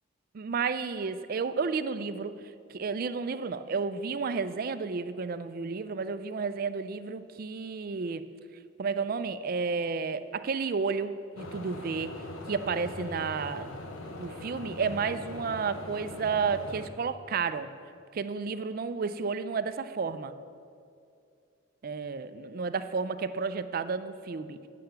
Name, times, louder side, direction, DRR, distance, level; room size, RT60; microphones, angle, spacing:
voice 1, 0.3-2.3 2.7-8.3 8.8-12.1 12.5-13.7 14.2-17.7 18.1-20.3 21.8-24.6, right 5 dB, 45° right, 11 dB, 0.4 m, -32 dB
sound 1, 11.3-16.9, left 1 dB, 80° left, 1.0 m, -41 dB
8.6 x 5.7 x 7.7 m, 2.4 s
head